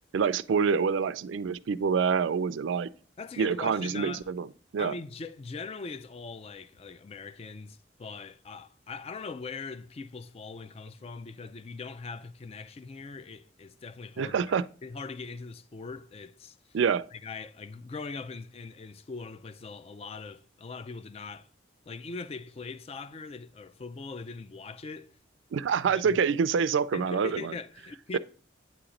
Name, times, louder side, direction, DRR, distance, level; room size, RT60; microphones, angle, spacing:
voice 1, 0.1-2.9 3.4-4.5 4.7-4.9 14.2-14.7 16.7-17.0 25.5-27.5 28.1-28.2, right 6 dB, 80° right, 0.4 m, -26 dB
voice 2, 3.2-4.3 4.8-14.4 14.8-16.8 17.1-21.5 21.9-25.1 25.9-26.2 26.9-28.2, left 4 dB, 30° left, 0.3 m, -41 dB
8.9 x 3.0 x 5.0 m
head